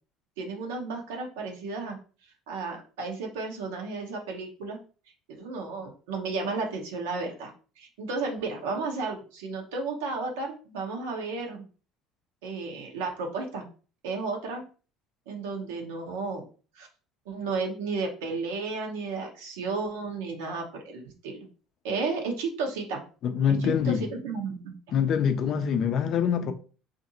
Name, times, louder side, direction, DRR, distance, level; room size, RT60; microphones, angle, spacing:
voice 1, 0.4-2.0 2.5-4.8 5.3-7.5 7.8-11.6 12.4-13.6 14.0-14.6 15.3-16.4 16.8-16.9 17.3-21.5 21.8-23.0 23.6-24.8, right 4 dB, 85° right, 0.7 m, -33 dB
voice 2, 23.2-24.1 24.9-26.5, left 7 dB, 55° left, 0.4 m, -25 dB
2.6 x 2.5 x 2.7 m
supercardioid pair, 80°, 0 cm